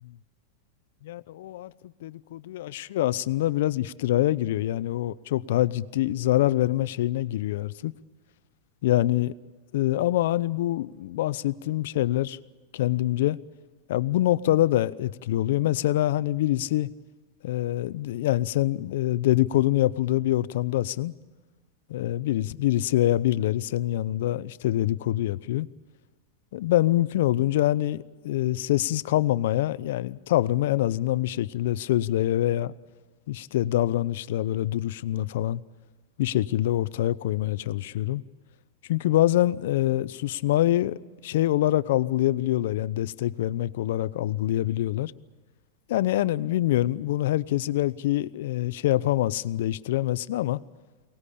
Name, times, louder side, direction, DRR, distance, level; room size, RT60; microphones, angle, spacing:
voice 1, 1.0-7.9 8.8-9.3 9.7-12.4 12.7-13.4 13.9-16.9 17.4-21.1 21.9-25.7 26.5-32.7 33.3-35.6 36.2-38.2 38.9-45.1 45.9-50.6, left 14 dB, 70° left, 0.7 m, -25 dB
23.0 x 19.0 x 8.5 m
supercardioid pair, 135°, 0 cm